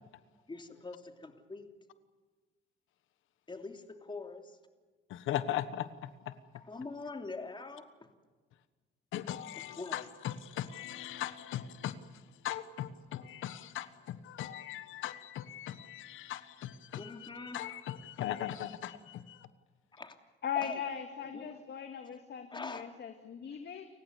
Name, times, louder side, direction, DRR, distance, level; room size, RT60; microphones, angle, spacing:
voice 1, 0.5-1.7 3.5-4.6 6.6-7.9 9.6-10.0 17.0-17.6 19.9-20.1 20.5-20.8 21.3-21.5 22.5-22.9, left 3 dB, 25° left, 5 dB, 3.1 m, -43 dB
voice 2, 5.1-6.3 9.1-19.5, left 11 dB, 85° left, 13 dB, 1.3 m, -39 dB
voice 3, 20.4-23.9, left 8 dB, 60° left, 6 dB, 2.1 m, -39 dB
29.5 x 16.0 x 8.3 m, 1.4 s
cardioid pair, 90°, 20 cm